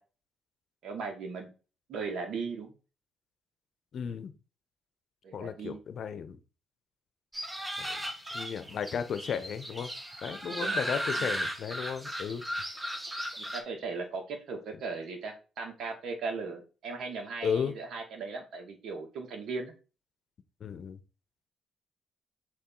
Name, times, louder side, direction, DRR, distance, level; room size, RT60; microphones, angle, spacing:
voice 1, 0.8-1.5 1.9-2.7 5.2-5.8 10.5-10.8 11.1-11.3 13.4-19.7, right 4 dB, 70° right, 3 dB, 2.0 m, -38 dB
voice 2, 3.9-4.3 5.3-6.4 7.6-8.0 8.3-9.9 10.2-12.4 17.4-17.7 20.6-21.0, left 7 dB, 60° left, 11 dB, 0.8 m, -34 dB
sound 1, 7.3-13.6, equal, 15° right, 1.6 m, -36 dB
6.5 x 4.2 x 3.9 m, 0.33 s
cardioid pair, 90°, 0 cm